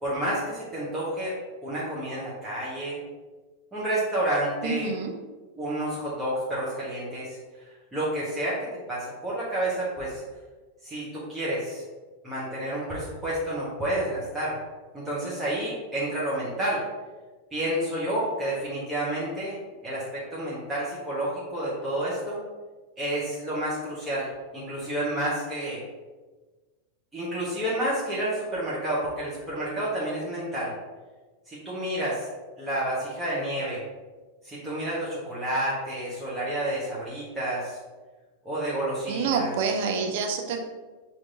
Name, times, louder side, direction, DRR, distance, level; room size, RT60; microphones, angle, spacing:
voice 1, 0.0-1.4 1.6-3.0 3.7-4.9 5.6-7.4 7.9-10.2 10.8-11.8 12.2-14.6 14.9-16.8 17.5-19.6 19.8-22.4 23.0-24.3 24.5-25.8 27.1-30.7 31.5-32.3 32.6-33.8 34.4-37.8 38.4-39.5, right 1 dB, 10° right, -9 dB, 1.2 m, -30 dB
voice 2, 4.6-5.1 39.1-40.6, right 5 dB, 50° right, 3 dB, 0.6 m, -27 dB
6.4 x 2.9 x 2.5 m, 1.3 s
figure-of-eight pair, 90°, 0 cm